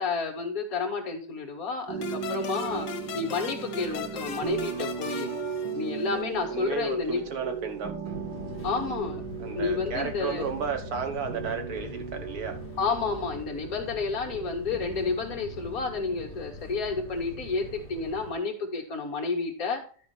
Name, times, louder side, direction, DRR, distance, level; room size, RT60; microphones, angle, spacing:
voice 1, 0.0-2.9 3.1-5.3 5.7-7.3 8.6-9.2 9.6-10.5 12.8-19.8, left 4 dB, 55° left, 1 dB, 2.1 m, -30 dB
sound 1, 1.9-17.0, right 7 dB, 85° right, 1.8 m, -38 dB
sound 2, 2.0-6.4, left 8 dB, 85° left, 1.6 m, -38 dB
voice 2, 6.5-8.1 9.4-12.6, right 5 dB, 60° right, 6 dB, 1.6 m, -33 dB
Fixed-wing aircraft airplane, 8.0-18.3, left 1 dB, 30° left, 1.7 m, -42 dB
12.0 x 4.5 x 4.4 m, 0.42 s
omnidirectional pair, 1.9 m